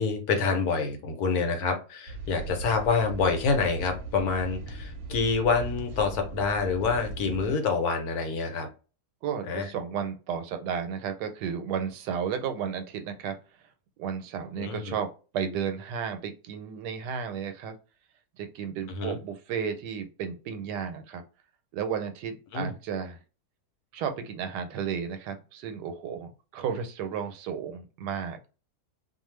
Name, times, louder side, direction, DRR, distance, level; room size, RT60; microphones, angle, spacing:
voice 1, 0.0-8.7 9.5-9.7 14.6-15.0 18.9-19.2 22.5-22.7, left 4 dB, 70° left, 5 dB, 1.1 m, -27 dB
sound 1, 2.1-7.5, right 3 dB, 70° right, 1.0 m, -38 dB
voice 2, 9.2-13.4 14.0-17.7 18.4-21.2 21.7-23.2 23.9-28.4, right 7 dB, 90° right, 7 dB, 1.2 m, -33 dB
2.5 x 2.3 x 3.1 m, 0.34 s
omnidirectional pair, 1.7 m